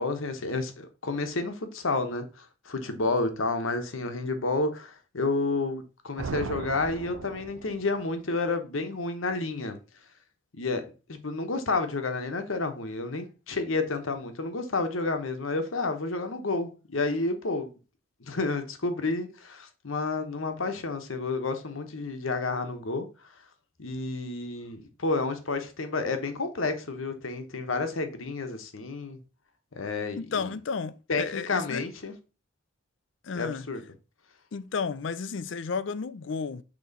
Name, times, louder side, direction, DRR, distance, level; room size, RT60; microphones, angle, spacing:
voice 1, 0.0-9.8 10.5-17.7 18.2-23.1 23.8-29.2 29.8-30.5 31.1-32.1 33.3-33.8, left 3 dB, 80° left, 1.0 m, -30 dB
sound 1, 6.2-8.1, right 5 dB, 85° right, 0.5 m, -37 dB
voice 2, 30.2-31.8 33.2-33.7 34.5-36.6, left 5 dB, 65° left, 0.4 m, -32 dB
6.9 x 3.1 x 5.2 m
head